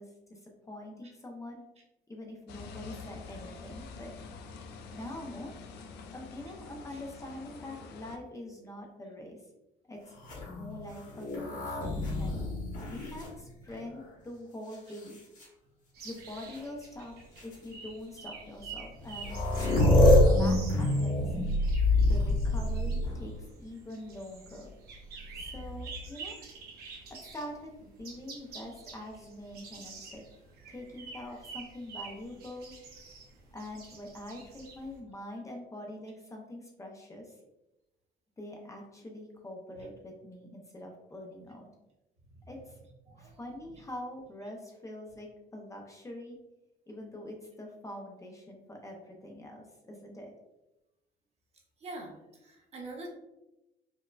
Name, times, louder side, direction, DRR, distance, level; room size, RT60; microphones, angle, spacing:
voice 1, 0.0-1.6 2.1-4.1 4.9-5.5 6.1-9.4 9.9-10.2 10.5-12.4 12.9-15.2 16.0-19.4 19.9-21.2 22.0-24.7 25.4-26.4 27.1-30.2 30.7-32.7 33.5-37.4 38.4-41.7 42.5-42.8 43.2-46.4 46.9-50.3, left 1 dB, 20° left, 0 dB, 0.5 m, -44 dB
sound 1, 2.5-8.2, left 4 dB, 75° left, 0.4 m, -46 dB
sound 2, 10.2-14.0 14.7-15.4 16.5-16.6 17.4-17.5 18.7-18.8 19.0-23.4 25.4-26.1, left 1 dB, 50° left, 1.3 m, -27 dB
sound 3, 15.9-35.0, right 5 dB, 65° right, 0.9 m, -48 dB
voice 2, 42.2-42.5 43.0-43.4 51.8-53.1, right 2 dB, 40° right, -1 dB, 0.9 m, -46 dB
4.4 x 2.1 x 2.3 m, 0.95 s
cardioid pair, 110°, 17 cm